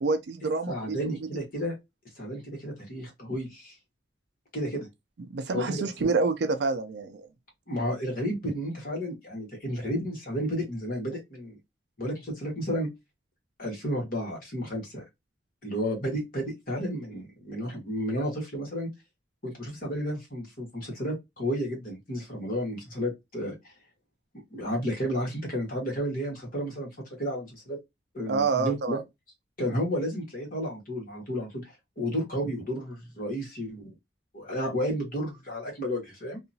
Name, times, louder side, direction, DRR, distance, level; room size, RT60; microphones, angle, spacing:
voice 1, 0.0-1.3 5.3-7.3 28.3-29.0, right 4 dB, 70° right, 0.4 m, -28 dB
voice 2, 0.7-1.7 2.2-3.7 4.5-4.9 5.5-6.1 7.7-11.6 12.0-12.9 13.6-15.0 15.6-18.9 19.4-23.7 24.5-26.9 27.2-27.8 28.1-29.0 29.6-33.9 34.3-36.4, equal, 50° left, 1.3 m, -32 dB
2.8 x 2.4 x 2.6 m
head